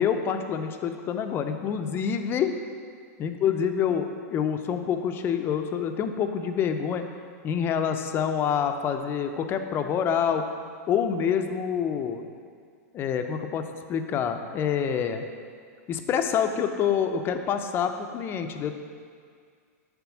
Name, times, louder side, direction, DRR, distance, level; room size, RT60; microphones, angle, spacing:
voice 1, 0.0-2.5 3.2-7.1 7.4-10.4 10.9-12.3 12.9-15.2 15.9-18.8, left 7 dB, 25° left, 7 dB, 0.4 m, -27 dB
6.9 x 3.6 x 6.0 m, 2.1 s
hypercardioid pair, 135°, 9 cm